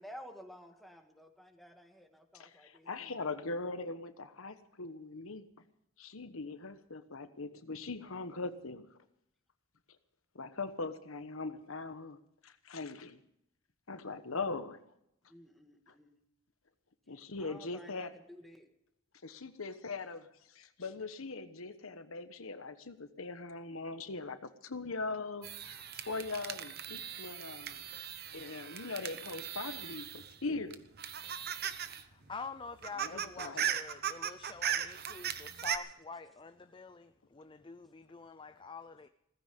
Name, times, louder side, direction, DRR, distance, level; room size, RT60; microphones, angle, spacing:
voice 1, 0.0-3.5 15.3-16.2 17.1-18.7, equal, ahead, 1.8 m, -53 dB
voice 2, 2.3-5.4 6.0-8.8 10.3-12.2 12.4-13.2 13.9-14.8 17.1-18.1 19.2-20.2 20.5-27.8 28.3-30.9 33.0-33.7, left 3 dB, 80° left, 1.2 m, -41 dB
sound 1, 25.4-30.4 30.7-32.0 32.3-32.4 32.7-35.8, right 9 dB, 50° right, 1.0 m, -38 dB
voice 3, 31.8-39.1, left 4 dB, 25° left, 0.5 m, -47 dB
16.5 x 15.0 x 5.3 m
head